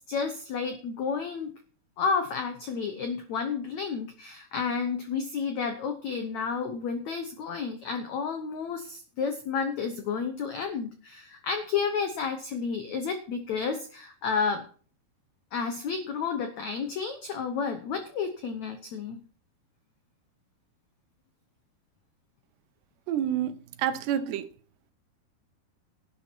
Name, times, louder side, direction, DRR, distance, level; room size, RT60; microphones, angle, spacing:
voice 1, 0.1-1.5 2.0-14.6 15.5-19.2, left 5 dB, 90° left, 1.5 m, -31 dB
voice 2, 23.1-23.5 23.8-24.5, right 10 dB, 80° right, 3.0 m, -28 dB
11.5 x 10.0 x 4.5 m
omnidirectional pair, 4.9 m